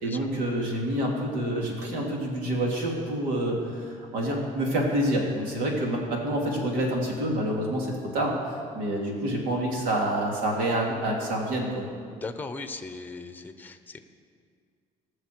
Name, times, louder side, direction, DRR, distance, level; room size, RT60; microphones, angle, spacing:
voice 1, 0.0-11.8, right 1 dB, 90° right, -1 dB, 2.6 m, -27 dB
voice 2, 12.1-14.0, left 3 dB, 10° left, 9 dB, 0.8 m, -38 dB
19.5 x 6.5 x 4.6 m, 2.1 s
cardioid pair, 110°, 14 cm